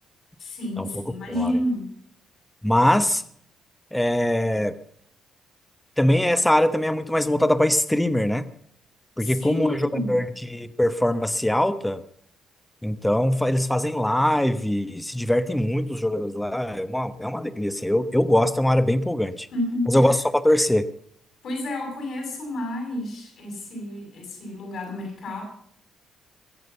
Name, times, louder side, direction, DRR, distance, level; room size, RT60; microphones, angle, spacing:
voice 1, 0.4-1.9 9.2-10.2 19.5-20.1 21.4-25.4, left 1 dB, 70° left, 0 dB, 6.8 m, -30 dB
voice 2, 2.6-3.2 3.9-4.8 6.0-8.5 9.2-12.0 12.8-19.5 19.9-20.9, left 1 dB, 5° left, 12 dB, 1.0 m, -22 dB
21.5 x 7.7 x 6.9 m, 0.67 s
cardioid pair, 90°, 0 cm